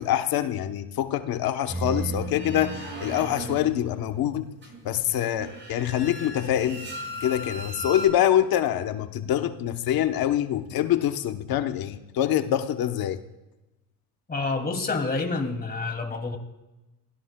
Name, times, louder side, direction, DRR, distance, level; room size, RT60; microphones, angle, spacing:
voice 1, 0.0-4.5 4.8-6.9 7.2-13.2, left 11 dB, 75° left, 8 dB, 0.9 m, -25 dB
sound 1, 1.7-8.1, right 1 dB, 30° right, 6.3 m, -36 dB
voice 2, 14.3-16.4, left 3 dB, 25° left, 4 dB, 2.5 m, -28 dB
28.5 x 17.5 x 2.2 m, 1.0 s
cardioid pair, 105°, 36 cm